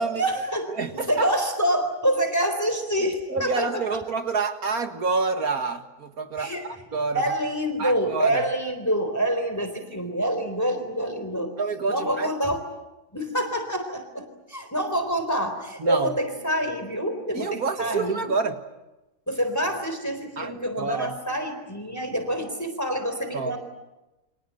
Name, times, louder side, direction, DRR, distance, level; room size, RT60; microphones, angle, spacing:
voice 1, 0.2-4.0 6.4-6.7 7.1-11.5 11.9-12.6 13.1-18.3 19.3-23.6, right 1 dB, 10° left, 6 dB, 3.9 m, -27 dB
voice 2, 0.8-1.3 3.0-7.3 7.8-8.4 11.6-12.3 15.8-16.1 17.3-18.6 20.4-20.5 20.8-21.2 23.3-23.6, right 4 dB, 60° right, 7 dB, 2.2 m, -28 dB
29.5 x 24.5 x 7.9 m, 1.0 s
omnidirectional pair, 1.8 m